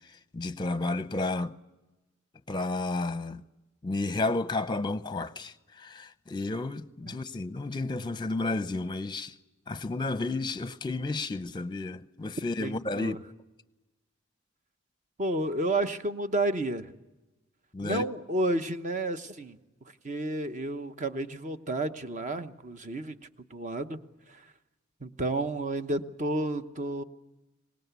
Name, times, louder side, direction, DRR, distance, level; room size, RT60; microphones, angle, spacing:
voice 1, 0.0-1.5 2.5-3.4 3.8-9.3 9.7-13.2 17.7-18.0, left 2 dB, 20° left, 0.7 m, -32 dB
voice 2, 12.6-13.2 15.2-16.9 17.8-19.6 20.0-23.2 23.5-24.0 24.3-24.4 25.0-27.0, right 2 dB, 40° right, 1.0 m, -31 dB
24.5 x 20.0 x 8.2 m
head